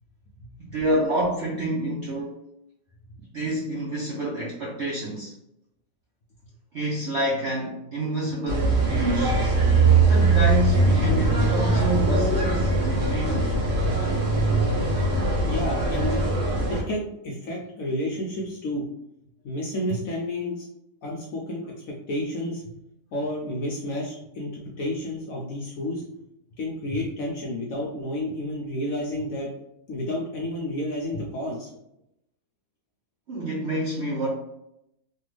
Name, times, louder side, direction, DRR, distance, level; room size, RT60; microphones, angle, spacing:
voice 1, 0.6-2.4 3.3-5.3 6.7-9.4 10.1-13.5 33.3-34.3, right 1 dB, 70° right, -4 dB, 0.6 m, -28 dB
sound 1, 8.5-16.8, right 2 dB, 45° right, 1.0 m, -21 dB
voice 2, 15.5-16.2 16.7-18.9 19.4-20.6 21.0-21.6 22.1-22.6 23.1-26.0 26.6-29.5 29.9-31.7, left 1 dB, 70° left, -2 dB, 0.8 m, -30 dB
3.3 x 2.3 x 3.1 m, 0.82 s
omnidirectional pair, 1.9 m